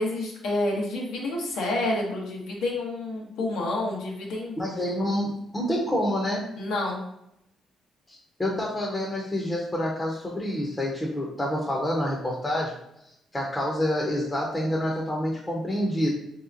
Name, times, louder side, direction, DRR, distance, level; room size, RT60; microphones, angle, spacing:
voice 1, 0.0-4.5 6.6-7.0, left 2 dB, 85° left, -1 dB, 0.9 m, -29 dB
voice 2, 4.6-6.5 8.1-12.8 13.3-16.1, left 1 dB, 20° left, -3 dB, 0.6 m, -27 dB
3.2 x 2.8 x 2.5 m, 0.77 s
cardioid pair, 90°, 0 cm